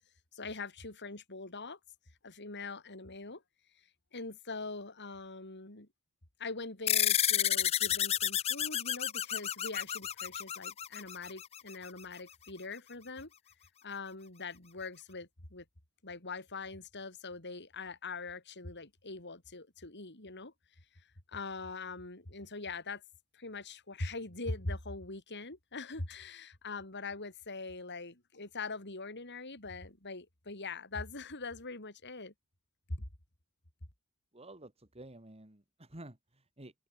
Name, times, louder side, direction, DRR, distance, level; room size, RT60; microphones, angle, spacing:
voice 1, 0.3-1.8 2.2-3.4 3.8-5.9 6.4-13.3 13.8-15.6 16.0-20.5 20.9-23.0 23.3-32.3 32.9-33.1, left 3 dB, 50° left, 4.5 m, -42 dB
sound 1, 6.9-11.7, left 11 dB, 25° left, 0.3 m, -31 dB
voice 2, 34.3-36.7, right 1 dB, 25° right, 3.2 m, -51 dB
head